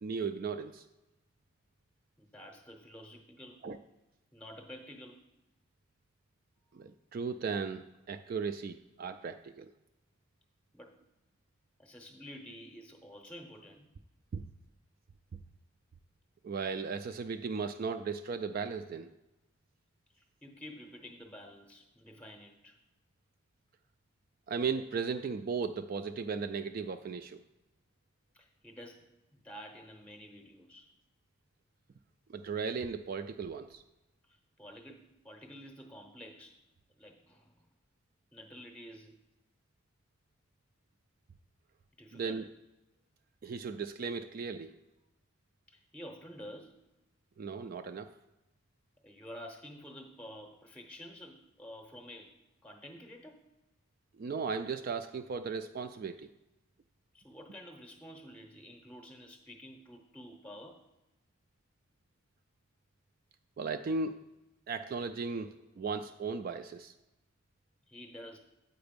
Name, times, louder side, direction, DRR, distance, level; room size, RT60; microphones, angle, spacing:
voice 1, 0.0-0.8 3.6-3.8 6.7-9.7 14.3-14.4 16.4-19.1 24.5-27.4 32.3-33.8 42.1-42.5 43.4-44.7 47.4-48.1 54.2-56.3 63.6-64.2 64.7-66.9, right 5 dB, 45° right, 8 dB, 0.3 m, -36 dB
voice 2, 2.2-3.7 4.3-5.2 10.7-11.0 11.8-13.9 20.1-22.8 28.3-30.9 34.3-36.6 37.0-37.7 38.3-39.2 42.0-42.5 45.7-46.8 49.0-53.4 57.1-60.9 67.9-68.4, equal, 5° left, 4 dB, 0.7 m, -50 dB
7.9 x 5.0 x 5.2 m, 0.97 s
head